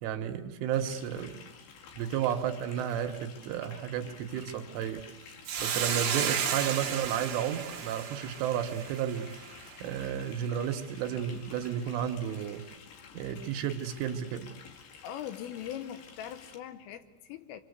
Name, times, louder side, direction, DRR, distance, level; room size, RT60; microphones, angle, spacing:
voice 1, 0.0-1.5 1.9-9.3 9.8-12.7 13.2-14.5, right 9 dB, 75° right, 7 dB, 3.5 m, -33 dB
sound 1, 0.7-16.6, left 6 dB, 60° left, 3.8 m, -51 dB
Hiss, 5.5-10.0, right 8 dB, 60° right, 2.1 m, -33 dB
voice 2, 15.0-17.6, left 10 dB, 80° left, 10 dB, 3.6 m, -41 dB
26.0 x 25.5 x 8.1 m, 1.1 s
omnidirectional pair, 5.9 m